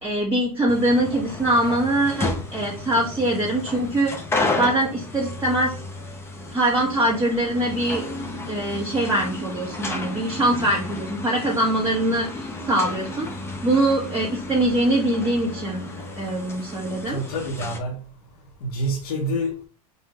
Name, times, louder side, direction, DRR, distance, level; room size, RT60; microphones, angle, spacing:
voice 1, 0.0-4.1 4.6-5.7 6.5-8.0 8.5-13.3 13.6-15.8 16.2-17.2, right 1 dB, 10° right, -5 dB, 1.4 m, -23 dB
sound 1, 0.7-17.8, left 2 dB, 10° left, 0.7 m, -32 dB
voice 2, 17.1-18.0 18.6-19.7, equal, 75° left, -2 dB, 1.1 m, -27 dB
5.3 x 2.5 x 3.1 m, 0.37 s
hypercardioid pair, 115°, 20 cm